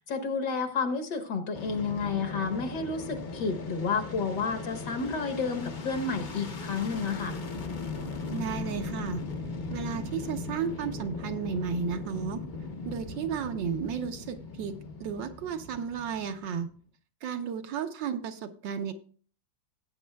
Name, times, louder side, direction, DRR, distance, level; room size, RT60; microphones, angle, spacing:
voice 1, 0.0-7.4, left 5 dB, 65° left, 6 dB, 1.8 m, -31 dB
Fixed-wing aircraft airplane, 1.5-16.7, left 3 dB, 45° left, 0.6 m, -38 dB
voice 2, 8.3-9.2 9.7-12.4 12.8-16.7 17.2-18.9, right 7 dB, 75° right, 7 dB, 1.6 m, -33 dB
16.5 x 8.5 x 2.2 m, 0.43 s
omnidirectional pair, 2.0 m